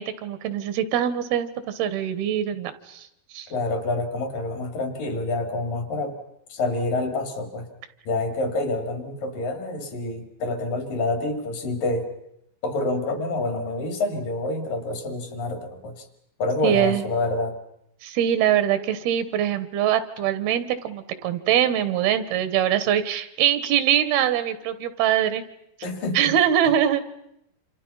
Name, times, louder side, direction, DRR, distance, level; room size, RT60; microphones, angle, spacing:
voice 1, 0.0-3.1 3.3-3.5 16.6-17.0 18.0-25.4 26.1-27.0, right 10 dB, 85° right, 13 dB, 3.3 m, -23 dB
voice 2, 3.5-6.2 6.5-7.7 8.1-12.1 12.6-16.1 16.4-17.6 25.8-26.3, left 2 dB, 65° left, 7 dB, 4.1 m, -27 dB
28.5 x 27.0 x 5.6 m, 0.78 s
omnidirectional pair, 4.4 m